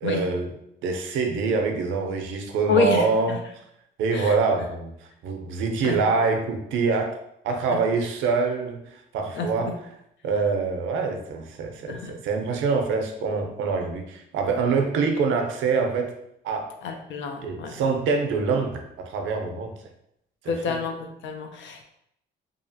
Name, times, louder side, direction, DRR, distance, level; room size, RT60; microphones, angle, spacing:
voice 1, 0.0-0.5 0.8-3.4 4.0-4.9 5.2-7.2 7.4-9.7 10.2-16.1 16.4-16.7 17.4-19.7 20.4-20.8, right 4 dB, 80° right, 4 dB, 0.5 m, -25 dB
voice 2, 2.7-3.0 4.1-4.3 5.8-5.9 9.4-9.5 11.9-12.1 16.8-17.7 20.5-21.8, left 5 dB, 70° left, 5 dB, 0.5 m, -27 dB
2.7 x 2.4 x 2.6 m, 0.77 s
cardioid pair, 90°, 20 cm